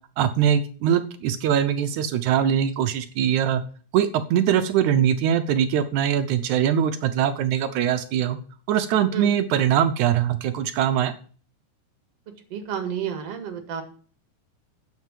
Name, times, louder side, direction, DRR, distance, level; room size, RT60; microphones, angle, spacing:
voice 1, 0.2-3.6 3.9-8.4 8.7-11.1, right 9 dB, 80° right, 10 dB, 2.1 m, -22 dB
voice 2, 12.5-13.8, right 8 dB, 55° right, 7 dB, 2.7 m, -30 dB
9.4 x 7.4 x 7.5 m, 0.43 s
omnidirectional pair, 3.5 m